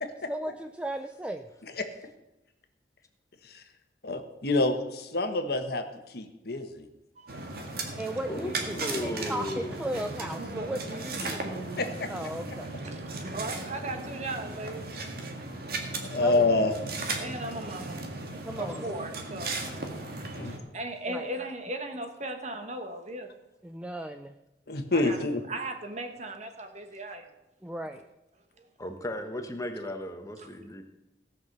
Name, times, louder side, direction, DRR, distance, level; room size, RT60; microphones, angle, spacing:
voice 1, 0.3-1.5 7.9-11.4 12.1-12.7 16.2-16.5 18.5-18.8 21.1-21.2 23.6-24.4 27.6-28.0, right 1 dB, 5° right, 6 dB, 0.4 m, -36 dB
voice 2, 4.0-6.9 11.3-11.4 11.8-12.1 16.0-16.7 20.3-20.5 24.7-25.4, left 2 dB, 60° left, 7 dB, 1.3 m, -28 dB
voice 3, 7.1-7.6 12.8-15.0 15.4-15.5 17.2-18.0 18.5-19.6 20.2-23.3 24.9-25.2 25.5-27.3 28.6-28.7 30.4-30.5, right 2 dB, 40° right, 6 dB, 1.4 m, -38 dB
sound 1, 7.3-20.6, right 2 dB, 60° right, 1.8 m, -36 dB
voice 4, 8.3-10.0 18.7-18.9 28.8-30.8, left 1 dB, 20° left, 5 dB, 1.2 m, -36 dB
17.0 x 5.9 x 6.7 m, 0.95 s
head